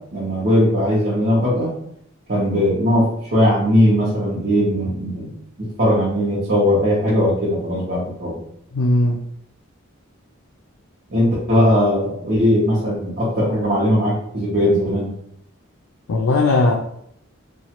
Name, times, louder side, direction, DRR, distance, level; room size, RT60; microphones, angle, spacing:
voice 1, 0.1-1.7 2.3-8.4 11.1-15.1, equal, 50° right, -8 dB, 0.9 m, -19 dB
voice 2, 8.7-9.2 16.1-16.7, left 2 dB, 75° left, -2 dB, 0.4 m, -17 dB
3.0 x 2.3 x 2.8 m, 0.72 s
head